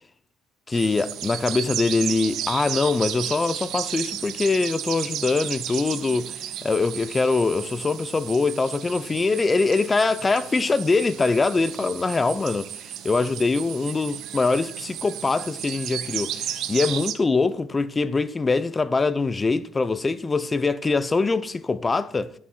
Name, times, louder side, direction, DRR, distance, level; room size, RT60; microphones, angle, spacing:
voice 1, 0.7-22.3, left 3 dB, 20° left, 0.5 m, -23 dB
sound 1, 0.7-17.1, right 11 dB, 65° right, 0.7 m, -34 dB
10.5 x 8.4 x 3.8 m
cardioid pair, 125°, 0 cm